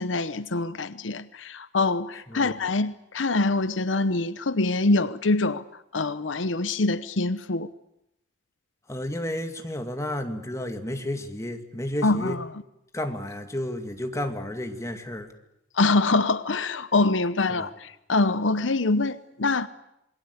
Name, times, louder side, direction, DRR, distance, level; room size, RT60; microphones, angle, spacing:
voice 1, 0.0-7.7 12.0-12.5 15.7-19.7, left 3 dB, 85° left, 0.9 m, -25 dB
voice 2, 8.9-12.4 12.9-15.3 17.6-17.7, left 1 dB, 15° left, 2.2 m, -32 dB
27.5 x 22.0 x 8.3 m
head